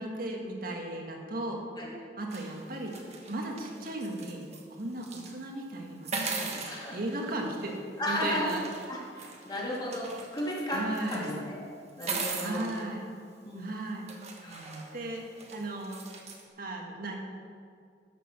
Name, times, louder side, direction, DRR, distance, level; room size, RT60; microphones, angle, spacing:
voice 1, 0.0-1.6 2.2-2.9 3.3-4.4 4.7-6.6 6.9-8.6 10.7-11.3 12.4-13.1 13.6-14.0 14.9-16.0 16.6-17.2, right 1 dB, 55° right, 1 dB, 1.7 m, -36 dB
sound 1, 2.3-4.6 5.0-5.3 6.0-7.8 8.5-11.3 11.9-12.8 13.6-13.7 14.1-16.4, right 4 dB, 40° right, 1.4 m, -40 dB
voice 2, 6.7-7.0 8.0-8.5 8.9-9.0 9.5-10.0 10.3-11.6 12.0-12.7 13.4-13.7 14.4-14.8, left 1 dB, 25° left, -4 dB, 2.6 m, -34 dB
13.0 x 6.8 x 5.9 m, 2.2 s
head